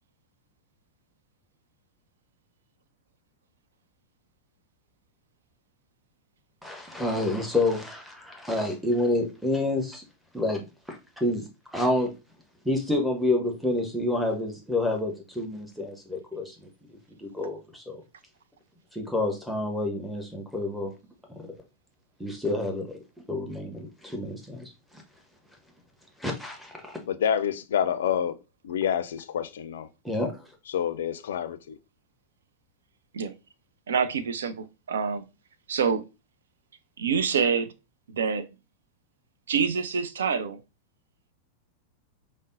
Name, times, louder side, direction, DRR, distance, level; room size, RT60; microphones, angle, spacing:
voice 1, 6.6-10.0 10.3-12.1 12.6-16.7 17.2-18.0 18.9-20.9 22.2-23.0 23.3-24.6 26.2-27.0 30.0-30.3, left 2 dB, ahead, 0.7 m, -28 dB
voice 2, 27.1-28.3 28.6-29.9 30.7-31.8, left 8 dB, 60° left, 0.3 m, -27 dB
voice 3, 33.9-35.2 35.7-36.1 37.0-37.7 38.1-38.4 39.5-40.6, right 6 dB, 65° right, 0.4 m, -26 dB
5.0 x 2.0 x 2.5 m
figure-of-eight pair, 90°, 0 cm